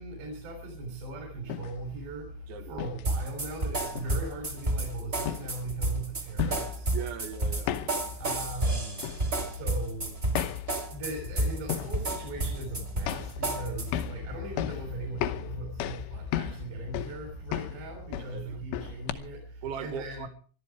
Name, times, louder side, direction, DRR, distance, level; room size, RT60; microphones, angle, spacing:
voice 1, 0.0-6.9 8.2-10.4 10.9-20.3, right 2 dB, 65° right, 3 dB, 5.7 m, -39 dB
sound 1, 1.4-19.1, left 10 dB, 80° left, 3.2 m, -37 dB
voice 2, 2.5-2.9 6.9-7.7 18.2-18.6 19.6-20.3, right 8 dB, 80° right, 8 dB, 4.2 m, -39 dB
sound 2, 3.0-14.1, right 2 dB, 20° right, 1.5 m, -31 dB
21.5 x 13.0 x 4.7 m, 0.40 s
omnidirectional pair, 5.3 m